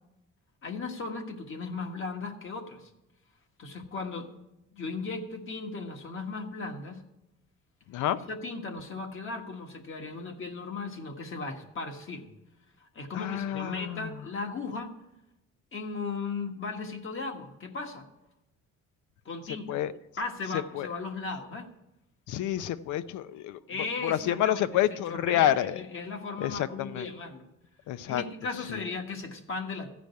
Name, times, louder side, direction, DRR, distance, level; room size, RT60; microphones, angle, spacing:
voice 1, 0.6-2.9 3.6-4.3 4.7-7.0 8.3-12.3 12.8-14.9 15.7-18.1 19.2-19.7 20.2-21.7 23.7-27.4 28.1-29.9, left 4 dB, 45° left, 4 dB, 1.5 m, -36 dB
voice 2, 13.1-14.1 19.7-19.9 20.7-20.9 22.3-23.6 24.0-25.8 26.4-27.0 27.9-28.2, left 12 dB, 85° left, 15 dB, 0.6 m, -28 dB
14.5 x 5.1 x 9.3 m, 0.93 s
cardioid pair, 120°, 29 cm